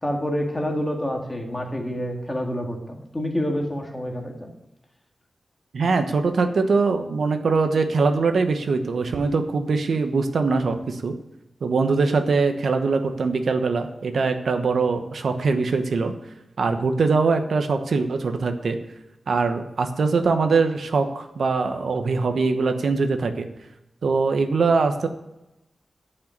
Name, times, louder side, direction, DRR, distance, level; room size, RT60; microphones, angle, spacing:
voice 1, 0.0-4.5, equal, 15° left, 1 dB, 1.9 m, -28 dB
voice 2, 5.7-11.1 11.6-16.1 16.6-18.8 19.3-23.5 24.0-25.1, right 4 dB, 85° right, 7 dB, 1.0 m, -22 dB
10.5 x 5.7 x 8.7 m, 0.91 s
wide cardioid pair, 130°, 0 cm